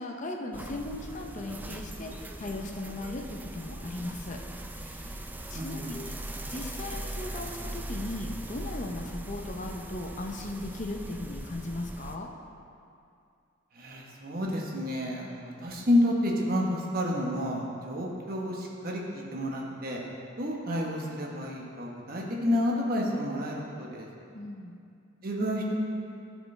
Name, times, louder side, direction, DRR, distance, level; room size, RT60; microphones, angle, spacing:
voice 1, 0.0-4.4 4.7-5.1 5.5-12.3 24.3-24.8, left 2 dB, 40° left, 2 dB, 0.6 m, -38 dB
sound 1, 0.5-12.2, right 1 dB, 10° right, 0.3 m, -40 dB
voice 2, 5.5-6.0 13.7-20.0 20.4-24.1 25.2-25.7, left 1 dB, 50° right, -1 dB, 1.1 m, -30 dB
13.0 x 5.1 x 3.2 m, 2.5 s
head